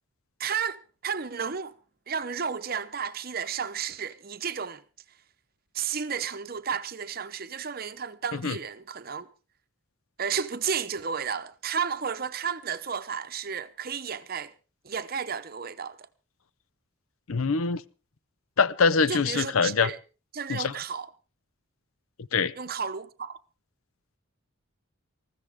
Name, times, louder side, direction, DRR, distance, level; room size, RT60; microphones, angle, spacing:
voice 1, 0.4-1.7 2.1-4.8 5.7-9.3 10.2-14.5 14.8-16.1 19.1-20.0 20.3-21.1 22.6-23.4, right 6 dB, 45° right, 0.8 m, -32 dB
voice 2, 17.3-17.8 18.6-19.9 20.5-20.7 22.3-22.5, left 5 dB, 80° left, 0.7 m, -24 dB
20.0 x 14.5 x 3.6 m
head